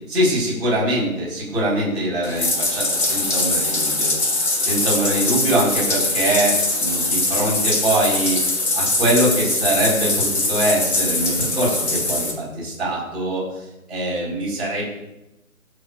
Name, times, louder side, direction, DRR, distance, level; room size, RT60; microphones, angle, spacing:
voice 1, 0.1-4.1 4.6-8.4 8.7-13.4 13.9-14.9, right 1 dB, ahead, -17 dB, 1.8 m, -23 dB
Bathtub (filling or washing), 2.2-12.3, left 2 dB, 80° left, 3.6 m, -22 dB
16.5 x 6.2 x 2.4 m, 0.95 s
hypercardioid pair, 175°, 42 cm